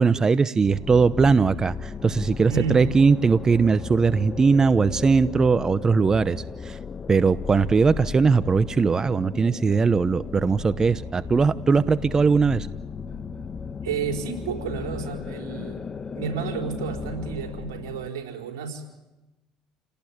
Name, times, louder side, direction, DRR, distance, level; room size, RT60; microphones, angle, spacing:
voice 1, 0.0-6.8 7.1-12.7, right 5 dB, 30° right, 16 dB, 0.8 m, -20 dB
sound 1, 0.6-18.1, left 5 dB, 30° left, 1.3 m, -36 dB
voice 2, 2.5-2.9 13.8-18.8, right 6 dB, 90° right, 4 dB, 4.5 m, -31 dB
29.0 x 19.0 x 8.8 m, 1.0 s
supercardioid pair, 80°, 2 cm